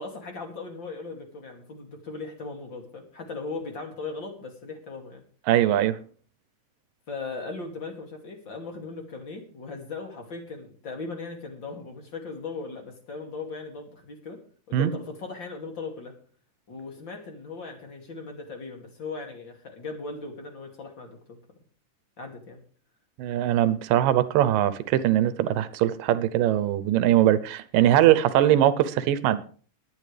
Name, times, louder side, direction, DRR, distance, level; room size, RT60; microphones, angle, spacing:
voice 1, 0.0-5.2 7.1-14.4 14.7-16.1 16.7-21.4 22.2-22.6, left 4 dB, 35° left, 2.9 m, -38 dB
voice 2, 5.5-6.0 14.7-14.9 23.2-29.4, right 12 dB, 85° right, 2.5 m, -21 dB
22.0 x 9.0 x 3.3 m
omnidirectional pair, 3.8 m